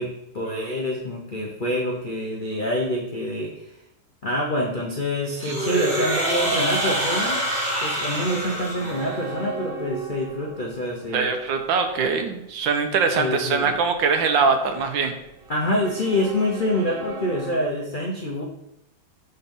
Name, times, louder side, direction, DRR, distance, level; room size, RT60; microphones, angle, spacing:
voice 1, 0.0-3.7 4.2-7.4 7.8-11.3 13.2-13.8 15.5-18.4, left 1 dB, 85° left, -1 dB, 0.4 m, -26 dB
sound 1, 5.4-9.4, right 1 dB, 30° right, 1.3 m, -26 dB
sound 2, 6.0-17.6, right 2 dB, 60° right, 0.9 m, -40 dB
voice 2, 11.1-15.1, right 5 dB, 75° right, 6 dB, 1.4 m, -22 dB
5.7 x 4.1 x 5.3 m, 0.84 s
omnidirectional pair, 2.1 m